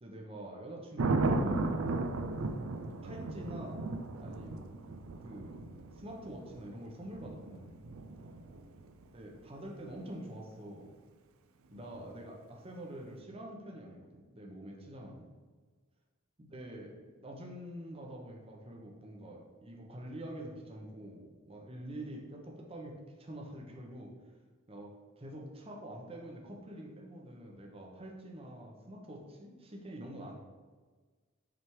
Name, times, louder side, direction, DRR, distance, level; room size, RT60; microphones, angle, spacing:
voice 1, 0.0-2.4 3.0-3.8 4.2-4.8 5.2-7.8 9.1-10.9 11.7-15.2 16.4-24.2 24.7-30.3, right 1 dB, 30° right, 0 dB, 0.8 m, -46 dB
Thunder, 1.0-9.0 11.7-12.1, right 3 dB, 80° right, 0.5 m, -35 dB
6.1 x 3.4 x 4.6 m, 1.4 s
head